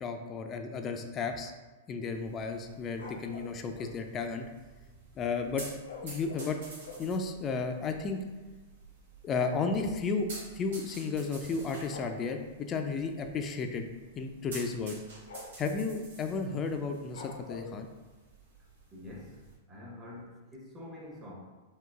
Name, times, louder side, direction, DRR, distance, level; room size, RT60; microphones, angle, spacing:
voice 1, 0.0-1.5 1.9-4.4 5.2-5.6 6.0-6.6 7.0-8.2 9.2-10.3 10.5-13.9 14.2-15.0 15.6-17.9, left 4 dB, 30° left, 5 dB, 0.3 m, -33 dB
sound 1, 2.1-19.5, right 3 dB, 70° right, 0.9 m, -51 dB
sound 2, 3.0-4.0 5.8-7.2 7.9-8.0 8.2-8.4 8.7-10.0 11.1-11.4 11.8-12.2 13.5-13.7 14.1-14.2 14.7-14.9 15.3-15.7 17.1-17.8, left 4 dB, 75° left, 0.6 m, -47 dB
voice 2, 18.9-19.4 19.7-21.3, left 1 dB, 25° right, -4 dB, 0.9 m, -46 dB
3.7 x 2.2 x 2.3 m, 1.2 s
hypercardioid pair, 110°, 0 cm